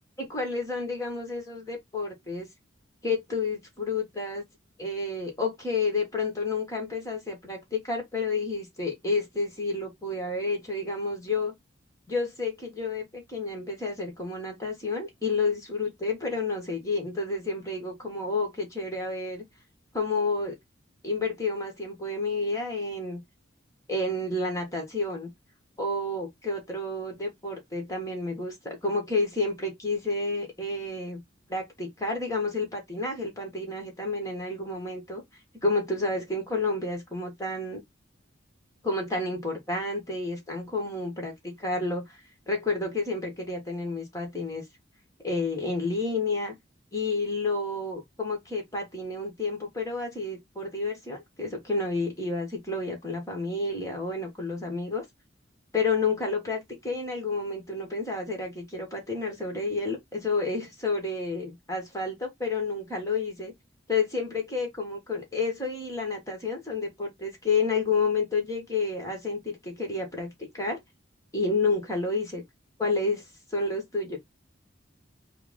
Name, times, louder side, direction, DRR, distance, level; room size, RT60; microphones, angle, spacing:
voice 1, 0.2-2.5 3.0-4.4 4.8-11.5 12.1-19.4 19.9-20.6 21.0-23.2 23.9-25.3 25.8-31.2 31.5-35.2 35.6-37.8 38.8-44.6 45.2-46.5 46.9-55.0 55.7-63.5 63.9-70.8 71.3-72.4 72.8-74.2, left 3 dB, 15° left, 1.5 m, -30 dB
4.5 x 2.2 x 3.6 m
head